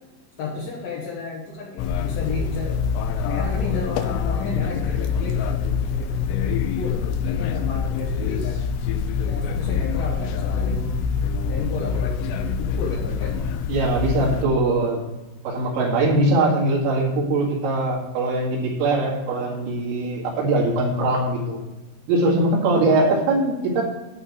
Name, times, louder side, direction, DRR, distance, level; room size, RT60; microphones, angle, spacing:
voice 1, 0.4-2.9 3.2-8.6 9.2-11.2 11.5-13.4 22.7-23.0, left 4 dB, 60° left, -4 dB, 2.4 m, -33 dB
sound 1, 1.8-14.5, left 6 dB, 90° left, 2.4 m, -25 dB
voice 2, 13.7-15.0 15.4-21.6 22.1-23.8, right 2 dB, 75° right, -2 dB, 4.7 m, -21 dB
12.0 x 4.5 x 7.1 m, 1.1 s
omnidirectional pair, 5.8 m